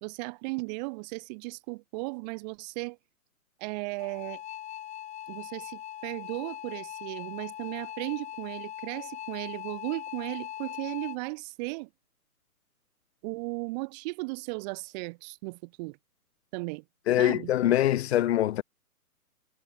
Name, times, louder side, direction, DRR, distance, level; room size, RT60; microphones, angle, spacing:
voice 1, 0.0-3.0 3.6-4.4 5.3-11.9 13.2-16.0 16.5-16.8 17.2-17.5, right 27 dB, 25° right, 2.9 m, -36 dB
sound 1, 4.0-11.2, left 12 dB, 15° left, 3.4 m, -40 dB
voice 2, 17.1-18.6, left 12 dB, 45° left, 3.6 m, -24 dB
hypercardioid pair, 145°, 46 cm